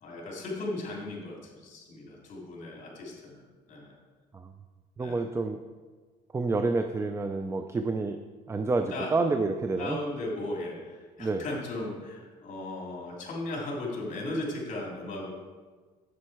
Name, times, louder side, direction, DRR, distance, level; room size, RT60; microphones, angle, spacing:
voice 1, 0.0-3.9 5.0-5.2 8.9-9.2 9.8-15.3, left 2 dB, 45° left, -2 dB, 2.9 m, -36 dB
voice 2, 5.0-5.6 6.3-8.2 8.5-10.0 11.2-11.4, right 3 dB, 15° right, 7 dB, 0.4 m, -28 dB
7.6 x 7.3 x 4.6 m, 1.4 s
cardioid pair, 110°, 17 cm